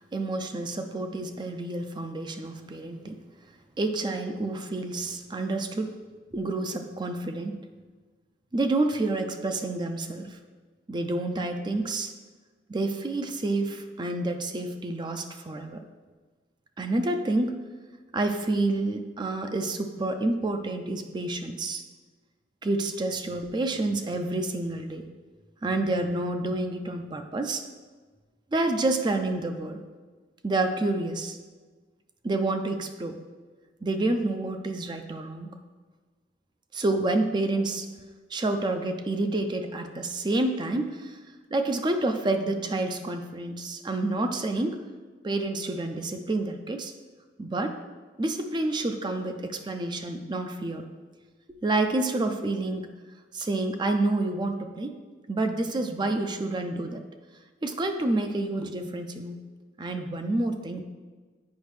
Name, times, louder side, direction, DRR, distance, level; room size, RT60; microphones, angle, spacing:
voice 1, 0.1-3.2 3.8-6.0 6.3-7.5 8.5-10.4 10.9-12.1 12.7-15.8 16.8-17.6 18.1-21.8 22.6-25.0 25.6-27.6 28.5-29.8 30.4-31.4 32.2-33.2 33.8-35.5 36.7-37.9 38.3-41.2 41.5-44.8 45.2-46.9 47.4-47.7 48.2-50.8 51.6-52.9 53.3-54.9 55.3-57.0 57.6-59.4 59.8-60.8, right 2 dB, 25° right, 6 dB, 0.4 m, -28 dB
8.3 x 5.1 x 3.2 m, 1.4 s
head